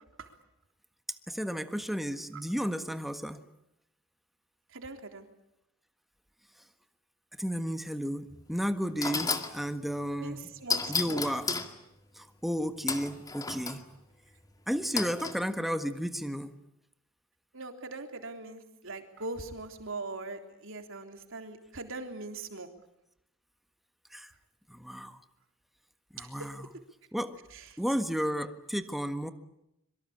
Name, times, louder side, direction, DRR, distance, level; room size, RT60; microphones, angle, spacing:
voice 1, 1.3-3.4 7.4-10.5 10.9-11.5 12.2-13.8 14.7-16.6 24.1-24.3 24.7-25.2 26.1-26.7 27.1-27.4 27.8-29.3, equal, ahead, 9 dB, 1.6 m, -33 dB
voice 2, 4.7-5.3 9.2-9.3 10.2-11.2 17.5-22.7 26.2-26.5 27.5-27.7, right 3 dB, 65° right, 6 dB, 3.6 m, -41 dB
sound 1, 8.3-8.4 9.0-9.5 10.7-11.7 12.9-13.8 14.9-15.4, left 4 dB, 20° left, 2.2 m, -32 dB
25.5 x 24.0 x 8.7 m, 0.83 s
head